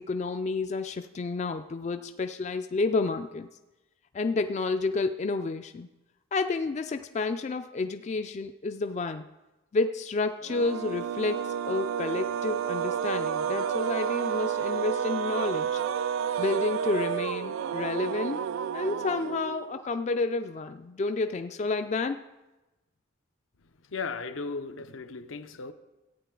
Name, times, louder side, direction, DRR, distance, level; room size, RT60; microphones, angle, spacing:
voice 1, 0.0-3.5 4.1-5.9 6.3-9.2 9.7-15.8 16.4-18.4 18.7-22.2, left 3 dB, 35° left, 8 dB, 0.3 m, -30 dB
sound 1, 10.4-19.8, right 8 dB, 85° right, 0.3 m, -30 dB
voice 2, 23.9-25.7, left 4 dB, 80° left, 9 dB, 0.7 m, -36 dB
14.0 x 9.2 x 3.8 m, 1.0 s
head